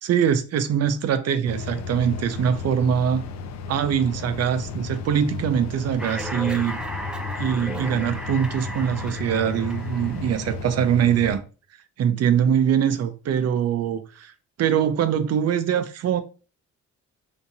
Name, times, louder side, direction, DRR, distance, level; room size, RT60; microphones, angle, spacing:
voice 1, 0.0-3.3 3.7-6.8 7.4-11.4 12.0-14.3 14.6-16.2, right 8 dB, 55° right, 0.6 m, -23 dB
sound 1, 1.4-11.4, left 4 dB, 65° left, 0.6 m, -34 dB
sound 2, 6.0-10.5, equal, 5° right, 0.5 m, -35 dB
3.4 x 2.9 x 2.7 m
cardioid pair, 90°, 30 cm